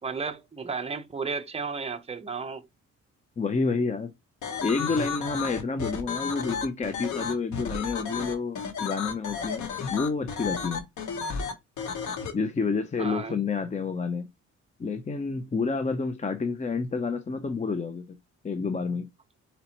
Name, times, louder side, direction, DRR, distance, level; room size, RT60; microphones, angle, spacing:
voice 1, 0.0-2.7 13.0-13.4, right 5 dB, 20° right, 0.8 m, -33 dB
voice 2, 3.4-4.1 4.6-10.8 12.3-14.2 14.8-18.0 18.4-19.1, left 4 dB, 25° left, 0.6 m, -29 dB
sound 1, 4.4-12.3, left 6 dB, 70° left, 1.2 m, -33 dB
4.3 x 4.0 x 2.9 m
cardioid pair, 90°, 30 cm